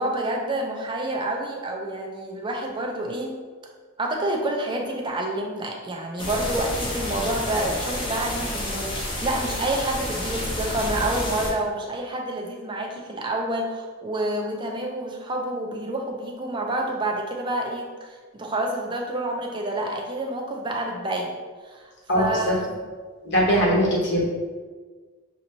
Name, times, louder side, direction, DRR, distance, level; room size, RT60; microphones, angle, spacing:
voice 1, 0.0-3.4 4.0-21.4 21.6-22.8, right 1 dB, 20° right, 1 dB, 0.5 m, -28 dB
sound 1, 6.2-11.5, left 1 dB, 25° left, 0.8 m, -30 dB
voice 2, 22.1-22.5 23.2-24.2, equal, 55° left, -4 dB, 1.0 m, -21 dB
6.3 x 2.9 x 2.7 m, 1.5 s
head